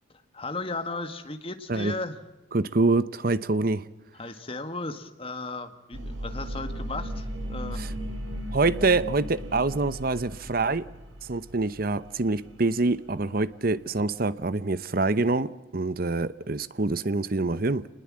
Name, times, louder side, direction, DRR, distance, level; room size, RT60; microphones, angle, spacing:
voice 1, 0.3-2.2 4.1-7.8, left 2 dB, 30° left, 1.8 m, -35 dB
voice 2, 2.5-3.9 7.8-7.9 8.5-10.9 11.2-17.9, right 3 dB, 45° right, 0.8 m, -26 dB
sound 1, 5.9-12.7 13.0-13.1, equal, 85° right, 6.8 m, -36 dB
27.5 x 20.5 x 7.5 m
head